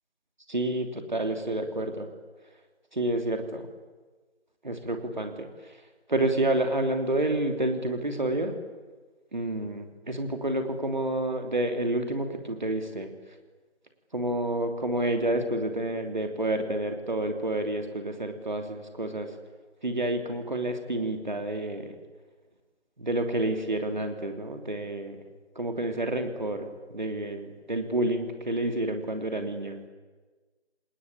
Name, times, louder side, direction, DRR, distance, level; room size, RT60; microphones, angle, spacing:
voice 1, 0.5-2.1 2.9-3.7 4.6-5.8 6.1-8.6 9.3-13.1 14.1-19.4 19.8-21.9 23.0-25.2 25.5-29.8, right 1 dB, 40° right, 5 dB, 3.0 m, -29 dB
27.0 x 19.5 x 8.8 m, 1.3 s
figure-of-eight pair, 170°, 34 cm